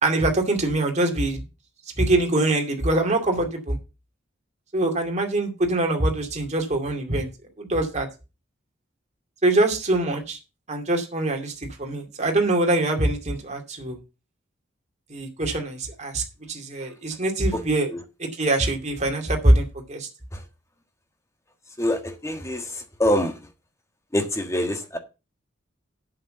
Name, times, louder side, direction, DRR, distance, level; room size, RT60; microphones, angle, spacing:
voice 1, 0.0-1.4 2.0-3.8 4.7-7.3 7.6-8.1 9.4-10.4 10.7-11.5 11.8-14.0 15.1-16.2 16.5-17.9 18.2-20.1, right 2 dB, 35° right, 2.3 m, -23 dB
voice 2, 21.8-22.6 23.0-23.3 24.1-25.0, left 1 dB, 15° left, 1.6 m, -24 dB
8.0 x 7.1 x 6.6 m
head